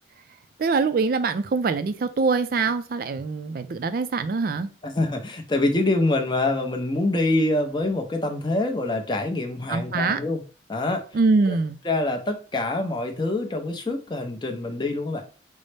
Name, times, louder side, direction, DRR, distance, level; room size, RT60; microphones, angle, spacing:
voice 1, 0.6-4.7 9.7-10.2 11.1-11.8, right 4 dB, 50° right, 0.3 m, -23 dB
voice 2, 4.8-10.4 10.7-11.0 11.5-11.6 11.8-15.3, left 2 dB, 25° left, 0.5 m, -25 dB
5.3 x 2.0 x 3.2 m
head